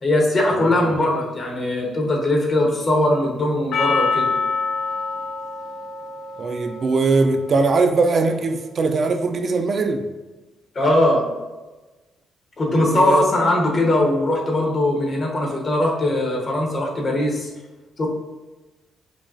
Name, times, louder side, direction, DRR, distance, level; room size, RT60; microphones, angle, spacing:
voice 1, 0.0-4.3 10.7-11.3 12.6-17.5 18.0-18.1, left 1 dB, 45° left, 1.0 m, -20 dB
voice 2, 0.6-0.9 6.4-10.1 12.9-13.2, right 3 dB, 45° right, 0.4 m, -21 dB
Percussion, 3.7-8.2, left 4 dB, 70° left, 0.3 m, -26 dB
5.1 x 2.3 x 2.6 m
cardioid pair, 90°, 0 cm